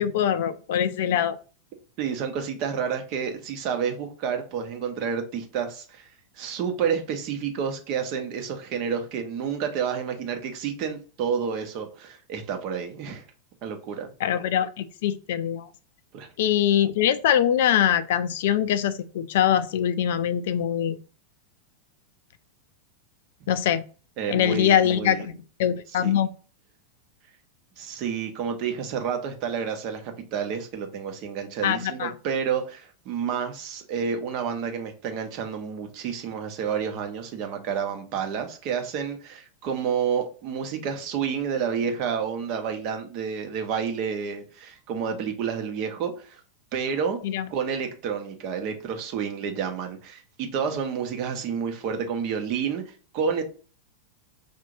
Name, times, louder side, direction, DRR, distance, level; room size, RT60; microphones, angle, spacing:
voice 1, 0.0-1.4 14.2-15.7 16.4-21.0 23.5-23.8 24.3-25.3 25.6-26.3 31.6-32.1 47.2-47.5, left 10 dB, 55° left, 0.4 m, -23 dB
voice 2, 2.0-13.2 13.6-14.1 16.1-16.3 23.4-23.5 24.2-25.3 26.0-26.1 27.8-46.4 46.7-47.2 47.5-53.4, right 7 dB, 40° right, 0.9 m, -30 dB
5.1 x 2.7 x 2.5 m
figure-of-eight pair, 90°, 0 cm